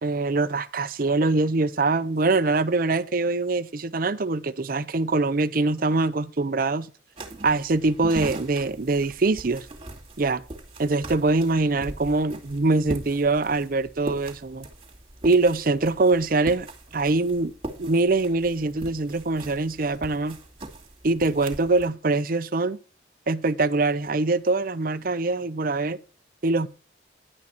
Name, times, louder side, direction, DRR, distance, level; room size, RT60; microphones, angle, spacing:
voice 1, 0.0-6.9 7.4-9.7 10.2-10.4 10.8-14.7 15.2-16.7 16.9-17.5 17.8-20.4 21.0-22.8 23.3-26.0 26.4-26.7, right 3 dB, 50° right, 0.6 m, -23 dB
sound 1, 7.2-21.9, right 1 dB, 30° right, 2.4 m, -40 dB
11.0 x 8.5 x 4.4 m
head